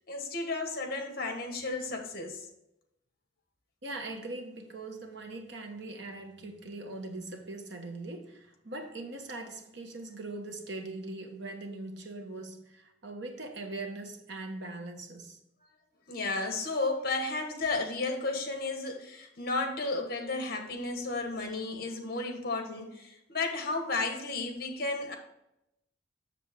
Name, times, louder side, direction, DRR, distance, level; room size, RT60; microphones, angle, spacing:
voice 1, 0.1-2.4 16.1-25.2, left 3 dB, 50° left, 1.3 m, -33 dB
voice 2, 3.8-15.4, right 2 dB, 65° right, 1.2 m, -41 dB
7.7 x 6.7 x 3.6 m
head